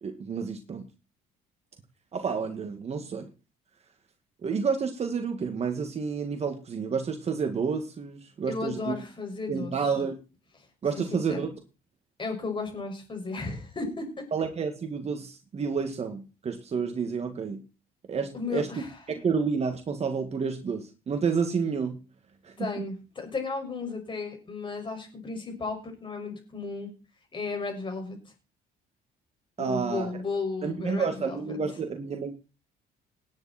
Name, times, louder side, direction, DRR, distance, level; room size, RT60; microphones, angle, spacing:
voice 1, 0.0-0.8 2.1-3.3 4.4-8.9 9.5-10.1 10.8-11.5 14.3-17.6 18.1-18.7 19.2-21.9 22.4-22.8 29.6-30.1 30.6-32.3, right 5 dB, 40° right, 5 dB, 2.2 m, -30 dB
voice 2, 8.5-9.9 10.9-11.4 12.2-14.3 18.3-19.0 22.6-26.9 27.3-28.2 29.6-31.6, left 4 dB, 30° left, 4 dB, 6.2 m, -34 dB
18.5 x 10.5 x 4.5 m, 0.33 s
cardioid pair, 110°, 17 cm